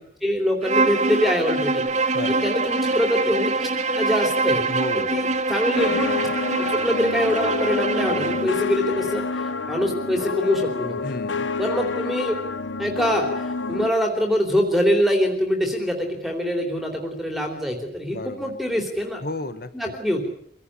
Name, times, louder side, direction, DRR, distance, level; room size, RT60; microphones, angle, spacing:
voice 1, 0.2-1.8 2.3-3.7 4.0-4.6 5.1-6.3 6.6-11.0 11.6-12.4 12.8-19.2 19.7-20.3, equal, ahead, 3 dB, 3.2 m, -24 dB
Bowed string instrument, 0.6-8.5, right 3 dB, 40° right, 2.1 m, -24 dB
voice 2, 2.1-2.5 4.7-5.2 11.0-11.5 18.1-18.5 19.2-19.9, left 1 dB, 50° left, 12 dB, 1.5 m, -33 dB
sound 1, 5.8-13.9, left 4 dB, 80° left, 1.0 m, -28 dB
25.5 x 17.0 x 9.8 m, 0.71 s
head